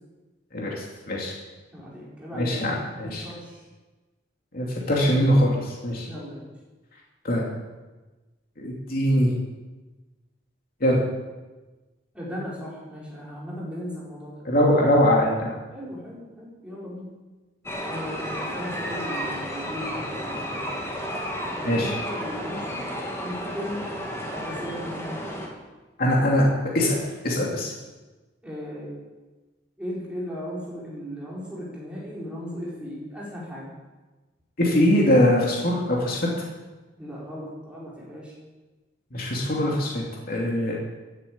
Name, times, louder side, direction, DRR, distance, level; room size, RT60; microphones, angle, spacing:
voice 1, 0.5-1.3 2.4-3.3 4.5-6.1 7.2-7.4 8.6-9.4 10.8-11.0 14.4-15.5 21.6-21.9 26.0-27.0 27.2-27.7 34.6-36.3 39.1-40.8, equal, 55° left, -3 dB, 2.8 m, -22 dB
voice 2, 1.7-3.6 6.0-6.5 12.1-14.4 15.7-17.1 17.9-20.9 21.5-22.8 23.2-23.9 24.3-25.4 28.4-29.1 29.8-33.7 37.0-38.3, equal, 5° right, -7 dB, 4.7 m, -37 dB
sound 1, 17.7-25.5, equal, 15° left, 2.7 m, -32 dB
15.0 x 9.7 x 8.7 m, 1.2 s
head